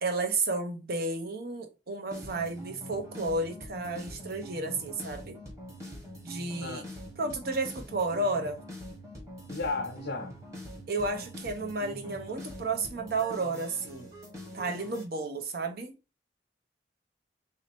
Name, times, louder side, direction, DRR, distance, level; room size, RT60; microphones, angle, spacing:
voice 1, 0.0-5.4 6.2-6.8 7.2-8.6 10.9-14.1 14.5-15.9, right 3 dB, 60° right, 0.8 m, -32 dB
sound 1, 2.1-15.0, equal, 15° right, 1.2 m, -44 dB
voice 2, 9.5-10.3, left 3 dB, 85° left, 0.7 m, -34 dB
3.1 x 2.8 x 4.3 m
head